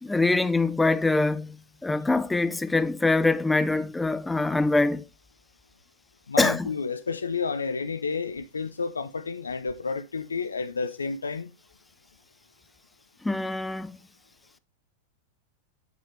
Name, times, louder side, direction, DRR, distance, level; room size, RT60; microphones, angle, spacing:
voice 1, 0.0-5.0 6.4-6.7 13.2-14.0, left 3 dB, 5° left, 0.5 m, -24 dB
voice 2, 6.3-11.5, left 5 dB, 75° left, 0.4 m, -30 dB
8.0 x 5.0 x 3.3 m
figure-of-eight pair, 90°, 0 cm